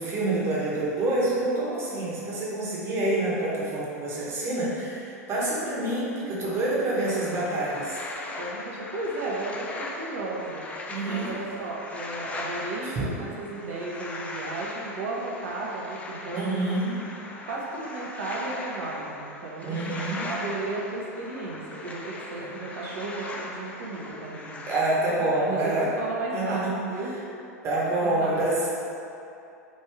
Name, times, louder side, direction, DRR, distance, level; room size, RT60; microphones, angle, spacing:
voice 1, 0.0-8.0 10.9-11.3 12.8-13.1 16.3-16.9 19.6-20.3 22.4-22.5 24.7-25.9 26.3-26.7 27.6-28.7, right 2 dB, 30° right, -6 dB, 1.0 m, -27 dB
sound 1, 7.0-24.8, left 2 dB, 15° left, 0.3 m, -39 dB
voice 2, 8.4-10.6 11.1-16.7 17.2-19.8 20.2-24.6 25.4-27.1 28.0-28.4, right 2 dB, 60° right, -3 dB, 0.7 m, -34 dB
3.1 x 2.6 x 3.4 m, 2.7 s
figure-of-eight pair, 90°, 9 cm